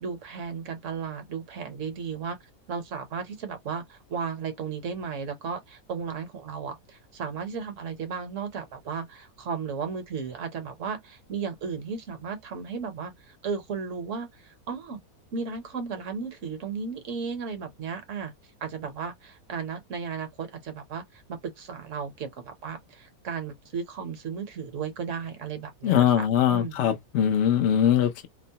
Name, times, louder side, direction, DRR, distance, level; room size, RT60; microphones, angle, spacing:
voice 1, 0.0-2.4 2.7-13.1 13.4-15.0 15.3-18.3 18.6-21.0 21.3-26.9, right 6 dB, 60° right, 1.1 m, -35 dB
voice 2, 25.8-28.3, left 9 dB, 60° left, 0.9 m, -22 dB
3.0 x 2.0 x 2.7 m
omnidirectional pair, 1.6 m